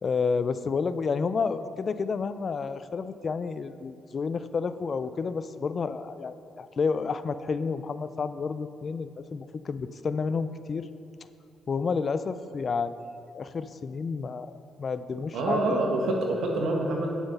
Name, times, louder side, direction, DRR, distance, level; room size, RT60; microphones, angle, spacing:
voice 1, 0.0-10.9 11.7-13.1 13.3-14.5 14.8-15.9, left 5 dB, 45° left, 13 dB, 0.4 m, -30 dB
voice 2, 15.3-17.1, right 2 dB, 80° right, 0 dB, 1.6 m, -26 dB
9.0 x 7.0 x 5.4 m, 2.5 s
cardioid pair, 90°, 0 cm